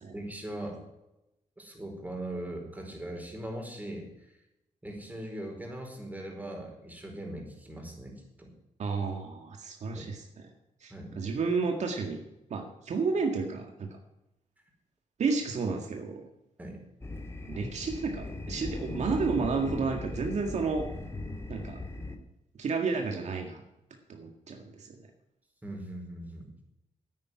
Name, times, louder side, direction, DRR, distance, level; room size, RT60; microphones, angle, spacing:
voice 1, 0.1-0.8 1.6-4.3 4.8-8.5 9.9-10.1 10.9-11.2 16.6-16.8 25.6-26.5, right 1 dB, 15° right, 1 dB, 4.8 m, -40 dB
voice 2, 8.8-10.5 10.8-12.2 12.5-14.0 15.2-16.2 17.5-20.9 21.5-21.8 22.6-23.6 24.1-25.0, right 4 dB, 70° right, 3 dB, 1.9 m, -31 dB
sound 1, 17.0-22.2, left 2 dB, 20° left, 2.2 m, -38 dB
9.9 x 9.6 x 9.9 m, 0.90 s
cardioid pair, 80°, 12 cm